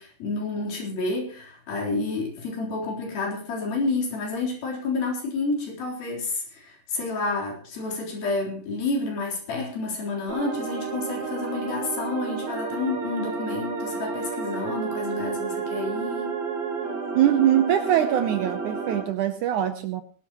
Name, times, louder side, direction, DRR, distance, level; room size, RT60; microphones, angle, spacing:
voice 1, 0.0-16.3, left 3 dB, 65° left, -1 dB, 5.7 m, -29 dB
sound 1, 10.3-19.0, right 5 dB, 60° right, 5.1 m, -31 dB
voice 2, 17.1-20.0, right 11 dB, 80° right, 9 dB, 1.8 m, -22 dB
21.0 x 12.5 x 3.0 m, 0.42 s
omnidirectional pair, 4.5 m